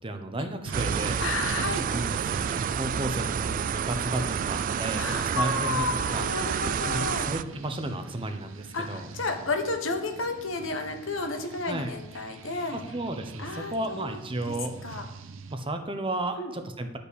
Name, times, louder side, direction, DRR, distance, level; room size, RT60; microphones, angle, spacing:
voice 1, 0.0-1.2 1.8-6.3 6.8-9.1 11.6-11.9 12.7-14.8 15.5-17.0, right 1 dB, 25° right, 7 dB, 0.9 m, -33 dB
sound 1, 0.6-15.6, right 3 dB, 70° right, 0.7 m, -42 dB
sound 2, 0.7-7.4, right 8 dB, 40° right, 0.3 m, -29 dB
voice 2, 1.2-1.8 4.7-7.3 8.7-12.8 13.4-14.2 14.5-14.6 14.8-15.0 16.4-16.5, left 3 dB, 70° left, 5 dB, 1.3 m, -32 dB
10.5 x 5.8 x 6.4 m, 0.92 s
head